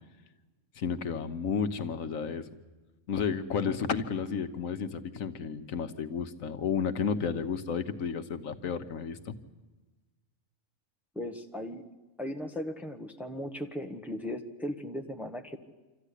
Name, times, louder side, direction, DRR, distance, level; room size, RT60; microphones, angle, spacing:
voice 1, 0.8-2.5 3.1-9.4, left 6 dB, 75° left, 9 dB, 1.4 m, -32 dB
voice 2, 11.1-11.8 12.2-15.6, left 1 dB, ahead, 4 dB, 1.2 m, -37 dB
26.0 x 14.5 x 10.0 m, 1.2 s
omnidirectional pair, 1.4 m